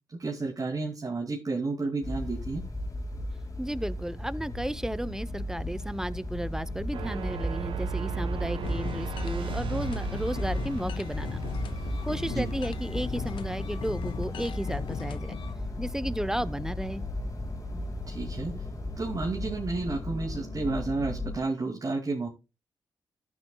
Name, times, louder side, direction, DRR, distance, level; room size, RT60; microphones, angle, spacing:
voice 1, 0.1-2.6 12.2-12.5 17.7-17.8 18.1-18.5 19.0-22.3, right 3 dB, 45° right, 2.5 m, -31 dB
sound 1, 2.0-21.4, left 1 dB, 40° left, 3.3 m, -35 dB
voice 2, 3.6-11.4 12.0-15.4 15.8-17.0, right 1 dB, 5° right, 0.8 m, -33 dB
sound 2, 6.9-15.4, right 8 dB, 70° right, 1.1 m, -38 dB
sound 3, 8.6-15.5, left 9 dB, 75° left, 0.7 m, -39 dB
14.0 x 8.8 x 2.3 m
hypercardioid pair, 40°, 9 cm